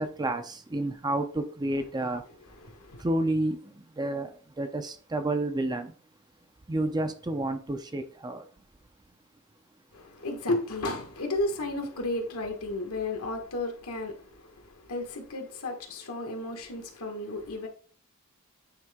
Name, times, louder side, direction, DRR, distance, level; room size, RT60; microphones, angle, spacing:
voice 1, 0.0-2.3 3.0-6.0 6.7-8.5, right 1 dB, 20° right, 0.5 m, -30 dB
voice 2, 2.6-3.0 9.9-17.7, left 2 dB, 80° left, 1.4 m, -33 dB
8.7 x 3.7 x 3.5 m
head